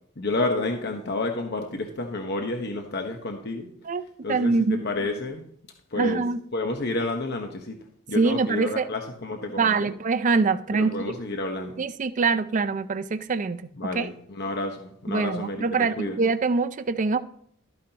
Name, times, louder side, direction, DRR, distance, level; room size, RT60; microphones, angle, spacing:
voice 1, 0.2-3.7 4.2-5.4 5.9-6.2 6.5-7.8 8.1-9.9 10.7-11.8 13.8-16.2, left 2 dB, 55° left, 1.1 m, -30 dB
voice 2, 4.3-4.9 6.0-6.4 8.2-8.9 9.6-10.9 11.8-13.7 13.9-14.1 15.1-17.2, right 4 dB, 40° right, 0.5 m, -24 dB
13.0 x 9.5 x 2.9 m
head